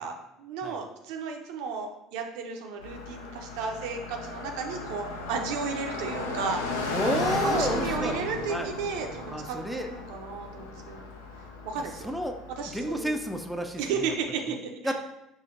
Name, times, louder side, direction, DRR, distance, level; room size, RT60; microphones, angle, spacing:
voice 1, 0.0-6.9 7.4-11.1 11.6-12.1 12.5-13.2 13.8-14.9, right 5 dB, 65° right, 3 dB, 0.5 m, -34 dB
Car passing by, 2.8-13.9, left 2 dB, 80° left, 0.5 m, -35 dB
voice 2, 6.9-8.2 8.5-8.7 9.3-9.9 12.0-12.4 12.7-13.8 14.8-14.9, equal, ahead, 4 dB, 0.4 m, -30 dB
5.0 x 2.5 x 2.5 m, 0.84 s
figure-of-eight pair, 65°, 0 cm